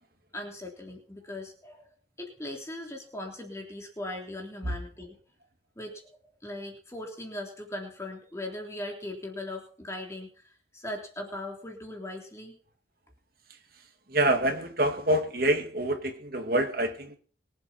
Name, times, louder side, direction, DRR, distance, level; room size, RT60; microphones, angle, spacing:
voice 1, 0.3-1.9 2.2-5.2 5.8-6.0 6.4-12.6, left 1 dB, 15° left, 1 dB, 3.6 m, -39 dB
voice 2, 14.1-17.2, right 1 dB, 55° right, 5 dB, 2.2 m, -26 dB
24.0 x 8.1 x 4.5 m, 0.43 s
head